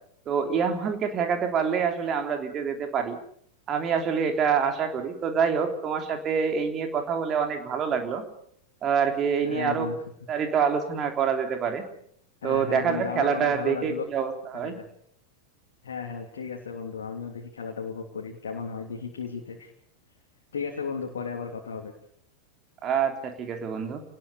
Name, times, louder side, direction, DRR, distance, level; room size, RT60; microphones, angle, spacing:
voice 1, 0.3-3.2 3.7-8.2 8.8-9.9 10.3-11.8 12.4-14.8 22.8-24.0, right 6 dB, 30° right, 5 dB, 3.4 m, -26 dB
voice 2, 9.4-10.0 12.4-14.0 14.5-14.8 15.8-19.7 20.5-21.9, left 6 dB, 65° left, 1 dB, 3.2 m, -34 dB
28.0 x 20.0 x 7.0 m, 0.65 s
figure-of-eight pair, 90°, 0 cm